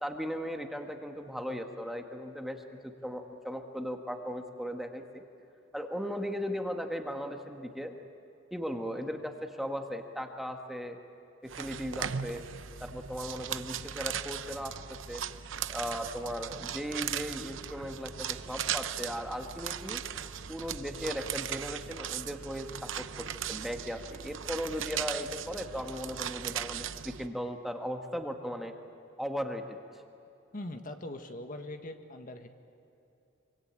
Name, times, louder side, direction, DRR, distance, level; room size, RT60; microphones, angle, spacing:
voice 1, 0.0-5.2 5.7-7.9 8.5-11.0 11.4-12.4 12.8-15.2 15.7-20.0 20.5-28.7 29.2-29.6, equal, ahead, 4 dB, 1.6 m, -37 dB
sound 1, 11.5-27.3, right 9 dB, 75° right, 0.8 m, -38 dB
voice 2, 30.5-32.5, left 1 dB, 45° left, 6 dB, 1.7 m, -41 dB
25.5 x 24.5 x 9.0 m, 2.9 s
head